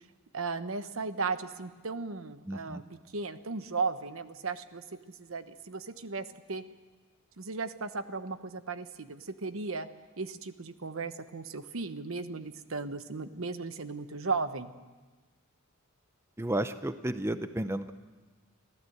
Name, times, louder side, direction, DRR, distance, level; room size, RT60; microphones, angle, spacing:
voice 1, 0.3-4.8 5.2-6.6 7.4-9.9 10.2-14.7, right 4 dB, 75° right, 11 dB, 1.0 m, -36 dB
voice 2, 2.5-2.8 16.4-17.9, right 1 dB, 10° right, 10 dB, 0.6 m, -32 dB
25.0 x 15.5 x 8.0 m, 1.3 s
head